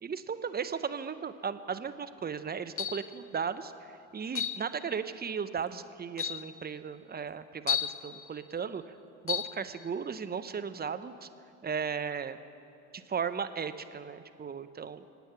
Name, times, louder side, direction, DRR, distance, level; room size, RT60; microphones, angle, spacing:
voice 1, 0.0-9.0 9.2-11.3 11.6-12.4 12.9-15.0, right 6 dB, 25° right, 11 dB, 0.9 m, -36 dB
sound 1, 2.8-3.1 4.4-4.6 5.6-5.7 6.2-6.5 7.7-8.0 9.3-9.5, left 8 dB, 35° left, 0.9 m, -32 dB
25.0 x 9.2 x 5.9 m, 2.8 s
hypercardioid pair, 65°, 38 cm